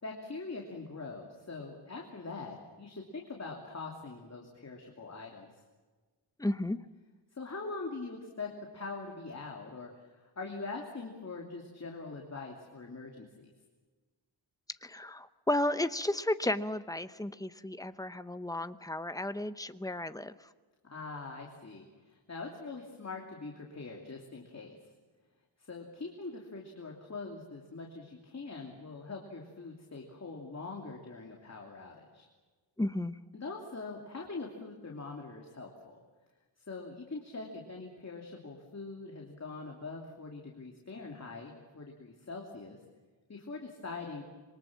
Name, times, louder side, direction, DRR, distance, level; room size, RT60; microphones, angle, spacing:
voice 1, 0.0-5.5 7.3-13.5 20.8-24.7 25.6-32.3 33.3-36.0 36.7-42.8 43.3-44.2, left 3 dB, 35° left, 0 dB, 2.8 m, -43 dB
voice 2, 6.4-6.8 14.8-20.3 32.8-33.2, left 1 dB, 10° left, 11 dB, 0.7 m, -33 dB
27.0 x 23.0 x 7.3 m, 1.3 s
wide cardioid pair, 170°, 47 cm